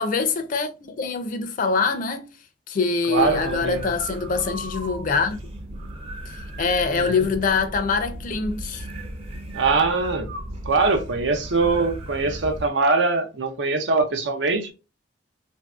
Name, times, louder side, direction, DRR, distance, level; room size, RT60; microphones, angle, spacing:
voice 1, 0.0-2.3 2.7-5.4 6.6-8.9, left 4 dB, 45° left, 0.4 m, -24 dB
voice 2, 3.1-3.9 7.0-7.3 9.5-10.3 10.6-14.7, right 3 dB, 80° right, 0.6 m, -22 dB
sound 1, 3.2-12.7, right 1 dB, 30° right, 0.5 m, -36 dB
3.1 x 2.6 x 2.2 m
head